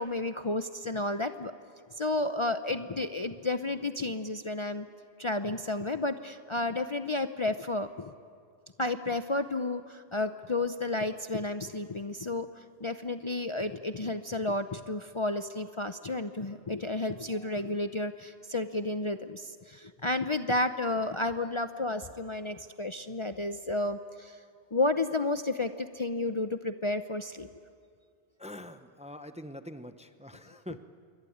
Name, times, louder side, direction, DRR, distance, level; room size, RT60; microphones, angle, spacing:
voice 1, 0.0-1.5 2.0-4.9 5.2-8.1 8.8-24.4 24.7-27.5, left 2 dB, 30° left, 8 dB, 0.7 m, -32 dB
voice 2, 28.4-30.8, left 1 dB, 5° right, 10 dB, 0.8 m, -44 dB
27.5 x 23.0 x 8.7 m, 2.3 s
omnidirectional pair, 1.1 m